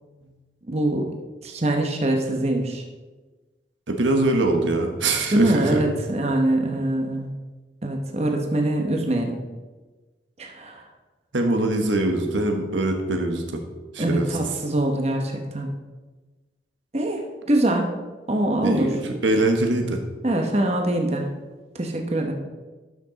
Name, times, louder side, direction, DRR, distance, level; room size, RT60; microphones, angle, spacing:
voice 1, 0.7-1.1 1.4-2.8 5.3-7.3 7.8-9.4 10.4-10.8 14.0-15.7 16.9-17.2 17.5-17.9 18.3-18.9 20.2-21.3 21.7-22.3, right 1 dB, 35° right, 2 dB, 1.0 m, -23 dB
voice 2, 3.9-5.8 11.3-13.6 13.9-14.4 18.6-20.0, right 2 dB, 90° right, 4 dB, 1.3 m, -23 dB
12.0 x 6.0 x 4.0 m, 1.2 s
head